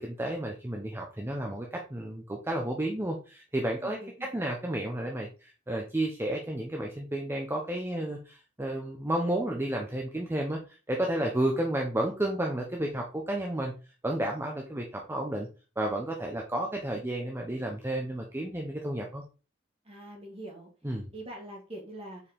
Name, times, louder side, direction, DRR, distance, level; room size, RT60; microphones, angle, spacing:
voice 1, 0.0-13.7 14.0-15.5 15.8-19.2 20.8-21.1, right 1 dB, 10° right, 1 dB, 0.9 m, -32 dB
voice 2, 3.8-4.3 19.8-20.7 21.1-22.2, right 1 dB, 30° right, 0 dB, 2.3 m, -43 dB
6.8 x 4.7 x 3.7 m, 0.34 s
head